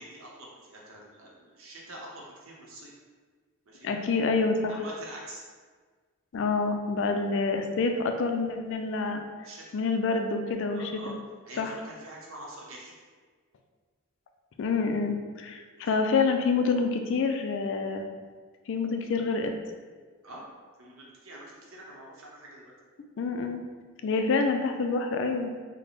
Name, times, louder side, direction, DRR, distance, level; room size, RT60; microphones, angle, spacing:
voice 1, 0.0-2.9 3.7-3.9 4.7-5.4 9.0-9.1 9.4-9.8 10.6-11.1 11.4-12.9 15.9-16.0 20.2-20.4 20.8-22.7, right 1 dB, 75° right, -3 dB, 0.8 m, -45 dB
voice 2, 3.8-4.8 6.3-9.2 9.7-11.1 11.6-11.7 14.6-18.0 18.7-19.5 23.2-23.6 24.0-25.5, left 4 dB, 60° left, 5 dB, 0.3 m, -27 dB
3.3 x 2.1 x 4.0 m, 1.5 s
head